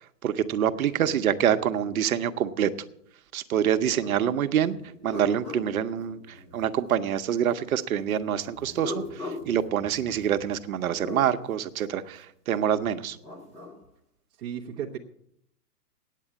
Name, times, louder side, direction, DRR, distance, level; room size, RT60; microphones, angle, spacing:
voice 1, 0.2-2.7 3.3-4.8 5.0-13.2, right 9 dB, 60° right, 10 dB, 0.8 m, -26 dB
voice 2, 1.5-1.9 14.4-15.0, right 8 dB, 10° right, -2 dB, 0.6 m, -37 dB
sound 1, 4.0-4.2 4.7-6.7 8.5-11.3 13.0-13.8, left 2 dB, 10° left, 1.2 m, -40 dB
9.1 x 8.4 x 8.5 m, 0.72 s
hypercardioid pair, 155°, 48 cm